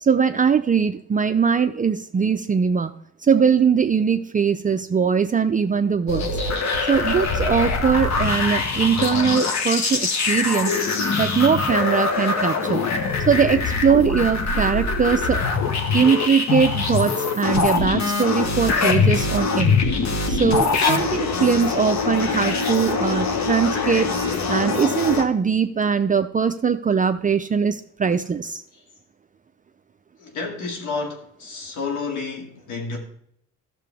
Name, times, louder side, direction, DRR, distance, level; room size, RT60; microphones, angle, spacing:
voice 1, 0.0-2.9 3.2-6.3 6.9-10.8 11.2-12.8 13.3-15.4 15.9-19.7 20.3-24.1 24.5-28.6, right 6 dB, 25° right, 0.5 m, -21 dB
sound 1, 6.1-25.2, left 4 dB, 65° left, 1.5 m, -23 dB
voice 2, 30.2-33.0, left 4 dB, 85° left, 2.3 m, -30 dB
13.0 x 6.7 x 3.5 m
cardioid pair, 90°, 30 cm